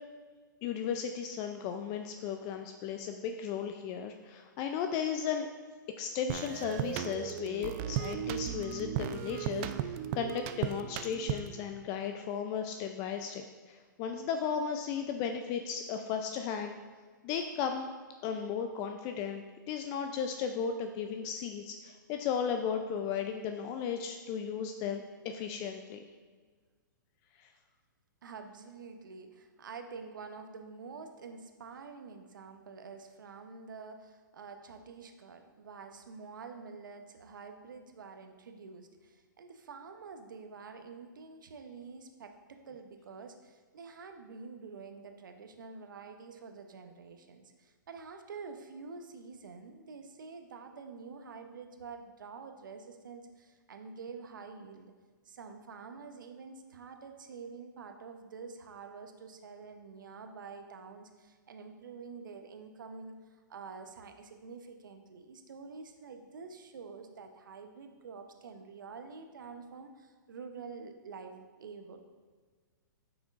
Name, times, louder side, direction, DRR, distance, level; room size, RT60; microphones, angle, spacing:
voice 1, 0.6-5.5 6.0-16.8 17.2-17.9 18.2-26.0 27.4-27.5, left 7 dB, 35° left, 6 dB, 0.4 m, -35 dB
sound 1, 6.3-11.6, right 11 dB, 35° right, 0.3 m, -36 dB
voice 2, 28.2-54.9 55.2-72.0, right 5 dB, 75° right, 6 dB, 0.8 m, -47 dB
8.8 x 6.1 x 2.5 m, 1.5 s
hypercardioid pair, 120°, 11 cm